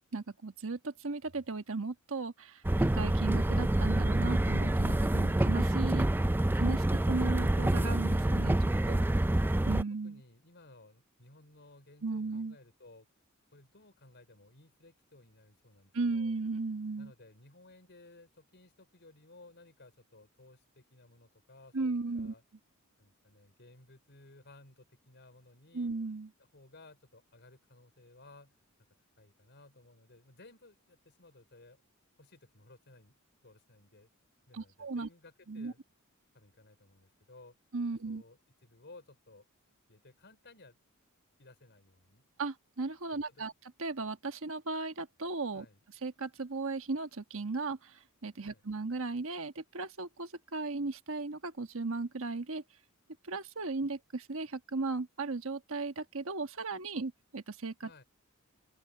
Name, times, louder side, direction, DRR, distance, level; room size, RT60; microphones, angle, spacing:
voice 1, 0.1-6.1 6.6-8.5 8.9-9.0 9.6-10.2 12.0-12.5 15.9-17.1 21.7-22.3 25.7-26.3 34.5-35.1 35.5-35.7 37.7-38.2 42.4-43.5 43.8-45.6 46.0-52.6 53.2-57.9, right 3 dB, 65° right, 1.3 m, -36 dB
sound 1, 2.6-9.8, right 1 dB, 10° right, 0.4 m, -27 dB
voice 2, 10.0-13.1 13.5-16.4 17.0-22.4 23.0-25.9 26.4-28.6 29.2-31.8 32.2-33.2 33.4-34.1 34.5-35.8 36.3-37.6 38.1-39.5 39.9-40.8 41.4-42.2 43.1-43.5 45.5-45.8 48.4-48.6 57.8-58.0, left 2 dB, 55° left, 5.2 m, -58 dB
open air
head